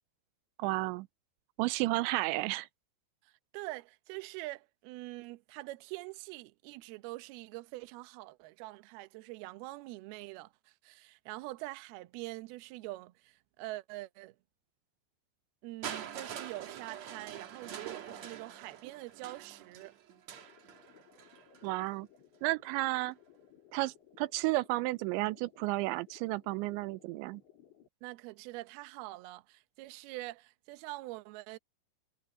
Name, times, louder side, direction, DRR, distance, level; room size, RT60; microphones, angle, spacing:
voice 1, 0.6-1.1 1.6-2.7 21.6-22.1 22.4-23.2 23.7-27.4, right 20 dB, 90° right, 3.0 m, -32 dB
voice 2, 3.2-14.4 15.6-19.9 28.0-31.6, right 19 dB, 75° right, 2.5 m, -45 dB
Crushing, 15.8-21.7 22.7-22.8, right 9 dB, 55° right, 2.0 m, -45 dB
sound 1, 20.4-27.9, left 9 dB, 80° left, 7.7 m, -61 dB
omnidirectional pair, 5.2 m